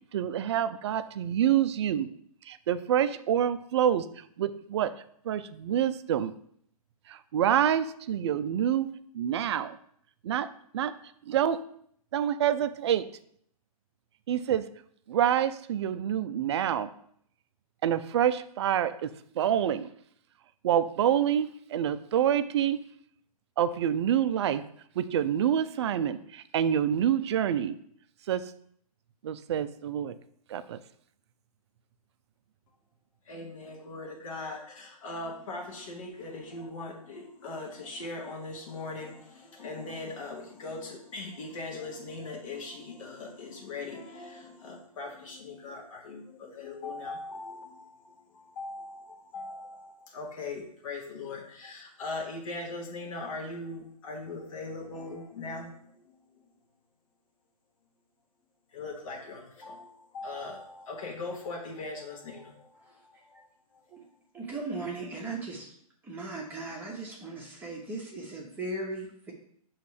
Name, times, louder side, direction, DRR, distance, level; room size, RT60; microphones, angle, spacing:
voice 1, 0.1-2.1 2.4-4.9 5.2-6.3 7.1-8.9 9.1-9.8 10.2-10.5 10.7-10.9 11.3-11.6 12.1-13.1 14.3-14.7 15.1-16.9 17.8-19.9 20.6-22.8 23.6-24.6 25.0-27.7 28.3-28.5 29.2-30.1 30.5-30.8, right 10 dB, 45° right, 13 dB, 0.4 m, -27 dB
voice 2, 33.2-56.1 58.7-63.4 63.7-63.8, left 3 dB, 55° left, -1 dB, 1.4 m, -40 dB
voice 3, 64.3-65.7 66.0-69.3, right 2 dB, 10° right, -3 dB, 1.0 m, -37 dB
6.7 x 3.1 x 4.8 m, 0.65 s
figure-of-eight pair, 125°, 19 cm